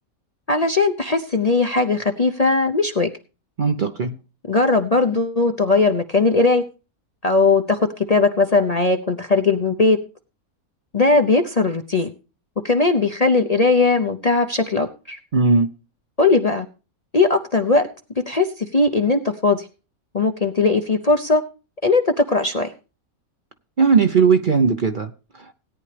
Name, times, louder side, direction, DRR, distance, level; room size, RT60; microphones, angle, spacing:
voice 1, 0.5-3.1 4.5-6.6 7.2-10.0 10.9-12.1 12.6-15.2 16.2-16.7 17.1-17.9 18.3-19.7 20.1-21.4 21.8-22.7, left 3 dB, 35° left, 5 dB, 0.7 m, -19 dB
voice 2, 3.6-4.2 15.3-15.7 23.8-25.5, right 5 dB, 45° right, 7 dB, 0.7 m, -18 dB
17.0 x 9.7 x 3.3 m, 0.33 s
omnidirectional pair, 1.5 m